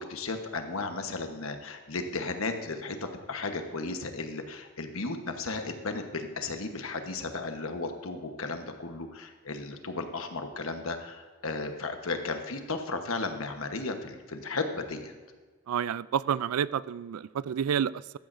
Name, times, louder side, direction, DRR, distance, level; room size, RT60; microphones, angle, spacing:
voice 1, 0.0-15.1, left 3 dB, 75° left, 6 dB, 1.2 m, -35 dB
voice 2, 15.7-18.2, right 8 dB, 90° right, 19 dB, 0.3 m, -29 dB
15.0 x 13.0 x 2.6 m, 1.4 s
head